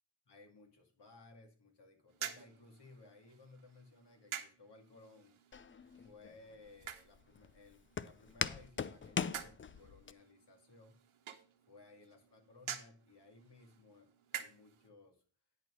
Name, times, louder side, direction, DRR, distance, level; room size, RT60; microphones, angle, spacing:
voice 1, 0.3-5.4 6.0-11.0 11.7-15.2, left 3 dB, 55° left, 3 dB, 2.5 m, -60 dB
sound 1, 2.1-14.9, right 8 dB, 75° right, 1.2 m, -50 dB
Walk footsteps, 5.5-10.1, left 6 dB, 25° left, 0.4 m, -41 dB
10.5 x 4.5 x 6.2 m, 0.40 s
cardioid pair, 85°, 50 cm